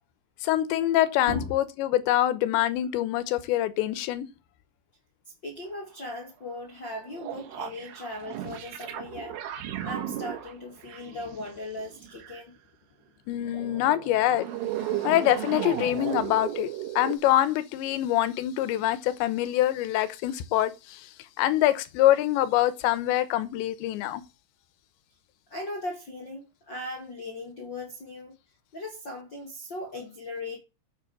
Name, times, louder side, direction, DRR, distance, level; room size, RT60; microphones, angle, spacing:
voice 1, 0.4-4.3 13.3-14.5 15.0-16.7 17.0-21.1 21.4-24.2, left 13 dB, 75° left, 2.9 m, -25 dB
voice 2, 5.4-9.4 9.8-12.5 25.5-28.3 28.7-30.6, left 2 dB, 45° left, 1.5 m, -38 dB
sound 1, 6.9-12.4 13.5-17.2, right 11 dB, 75° right, 4.2 m, -35 dB
8.9 x 7.7 x 7.3 m
omnidirectional pair, 6.0 m